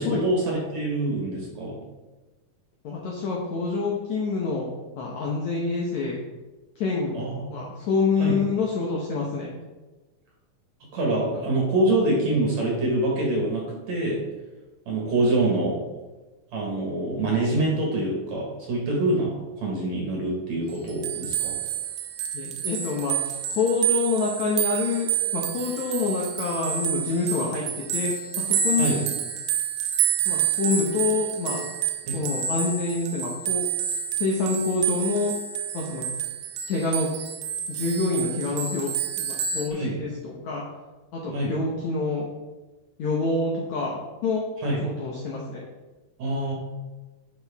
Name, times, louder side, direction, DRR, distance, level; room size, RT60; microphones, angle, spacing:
voice 1, 0.0-1.8 7.1-7.5 8.2-8.4 10.9-14.2 14.9-15.8 16.5-21.6 28.8-29.0 32.1-32.2 39.7-40.0 41.3-41.6 44.6-44.8 46.2-46.5, right 2 dB, 55° right, -2 dB, 2.3 m, -25 dB
voice 2, 2.8-4.7 5.0-6.2 6.8-7.2 7.5-9.5 22.3-29.0 30.2-31.6 32.1-33.7 34.2-35.3 35.7-36.1 36.7-37.1 37.7-38.9 39.2-40.6 41.1-42.3 43.0-44.4 44.8-45.6, left 4 dB, 75° left, -2 dB, 1.7 m, -27 dB
sound 1, 20.7-39.7, right 9 dB, 80° right, 2.0 m, -29 dB
10.0 x 6.0 x 3.5 m, 1.2 s
omnidirectional pair, 4.6 m